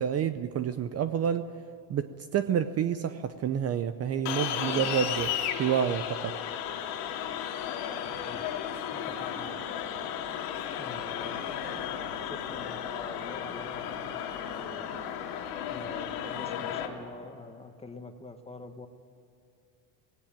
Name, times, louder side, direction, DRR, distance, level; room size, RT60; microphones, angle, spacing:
voice 1, 0.0-1.5 1.9-6.4, right 8 dB, 35° right, 11 dB, 0.7 m, -29 dB
sound 1, 4.3-16.9, left 9 dB, 90° left, 2.9 m, -34 dB
voice 2, 8.2-8.6 9.0-9.6 10.8-11.7 12.2-13.8 14.1-14.9 15.7-18.9, left 3 dB, 15° left, 7 dB, 1.4 m, -45 dB
18.5 x 17.5 x 9.0 m, 2.6 s
cardioid pair, 125°, 45 cm